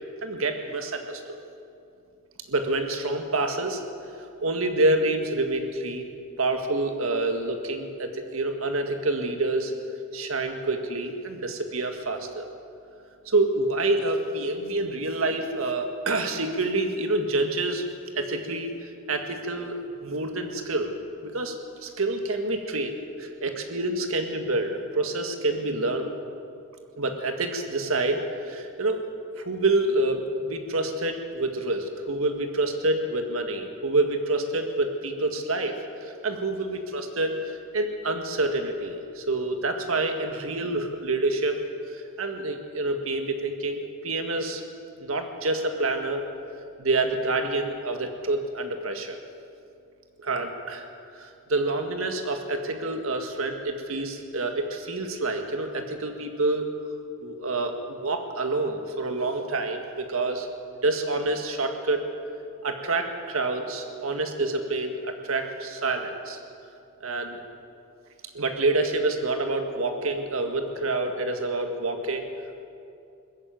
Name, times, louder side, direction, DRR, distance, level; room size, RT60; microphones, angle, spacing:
voice 1, 0.2-1.4 2.5-3.8 4.4-6.1 6.4-9.7 10.1-12.5 13.3-17.8 18.2-20.9 21.2-26.1 27.0-29.0 29.4-41.6 41.9-44.6 45.0-46.2 46.8-49.2 50.2-50.9 51.2-56.7 57.2-60.5 60.8-62.1 62.6-66.4 67.0-67.4 68.3-72.3, right 2 dB, 85° right, 5 dB, 1.9 m, -27 dB
20.5 x 14.5 x 9.3 m, 2.5 s
head